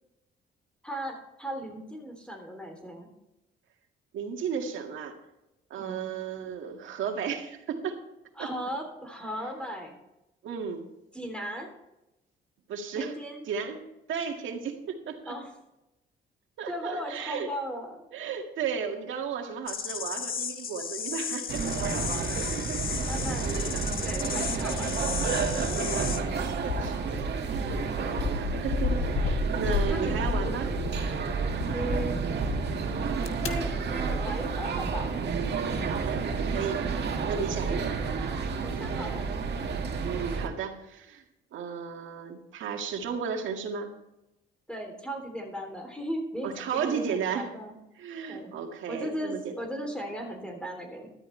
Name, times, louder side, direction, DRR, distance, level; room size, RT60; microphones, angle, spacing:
voice 1, 0.8-3.1 5.8-6.1 8.4-10.0 11.1-11.7 12.9-13.4 15.3-15.5 16.7-18.0 23.0-23.5 24.0-25.1 29.9-30.2 30.4-30.6 31.7-32.2 33.4-35.1 37.6-37.8 38.6-39.3 44.7-46.5 46.8-47.7 48.3-48.5 48.9-51.1, equal, 5° left, 2 dB, 3.2 m, -36 dB
voice 2, 4.1-5.2 5.7-8.0 8.4-8.5 10.4-10.9 12.7-13.2 13.4-13.8 14.1-15.3 16.6-17.5 18.1-22.3 23.6-23.9 24.9-25.2 25.6-27.8 28.0-30.7 35.9-36.2 36.5-36.8 37.3-38.0 40.0-41.2 41.5-43.9 46.4-47.5 48.0-49.6, right 6 dB, 80° right, 3 dB, 2.0 m, -34 dB
sound 1, 19.7-26.2, left 7 dB, 50° left, 1.1 m, -34 dB
sound 2, 21.5-40.5, right 5 dB, 60° right, 2.1 m, -30 dB
sound 3, 26.1-26.2 26.6-31.1 31.5-32.0 32.9-33.5, left 5 dB, 90° left, 1.3 m, -32 dB
13.5 x 13.0 x 3.3 m, 0.93 s
cardioid pair, 90°, 20 cm